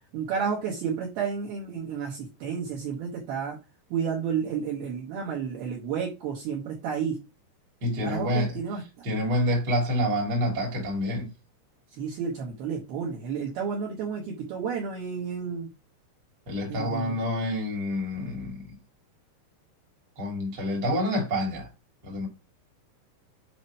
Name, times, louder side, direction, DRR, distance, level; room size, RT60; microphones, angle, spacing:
voice 1, 0.1-3.6 3.9-7.2 8.0-9.0 11.9-15.7 16.7-17.2, right 6 dB, 70° right, 2.4 m, -31 dB
voice 2, 7.8-8.5 9.0-11.3 16.5-18.7 20.2-21.7 22.0-22.3, equal, 35° right, 1.7 m, -27 dB
7.9 x 2.9 x 5.4 m
omnidirectional pair, 5.6 m